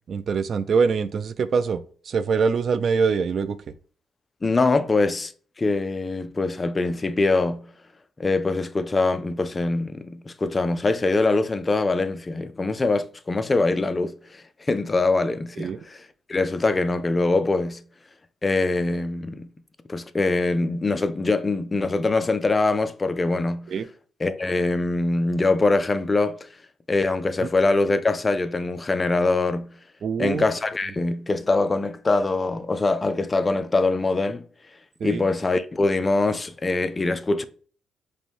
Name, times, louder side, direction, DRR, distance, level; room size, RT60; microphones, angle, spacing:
voice 1, 0.1-3.6 15.6-15.8 23.7-23.8 30.0-30.4 35.0-35.2, right 5 dB, 55° right, 0.4 m, -24 dB
voice 2, 4.4-5.3 5.6-7.6 8.2-17.8 18.4-19.5 19.9-23.7 24.2-26.5 26.9-29.7 30.2-34.4 35.0-37.4, left 3 dB, 25° left, 0.4 m, -23 dB
5.2 x 2.2 x 3.2 m
cardioid pair, 90°, 0 cm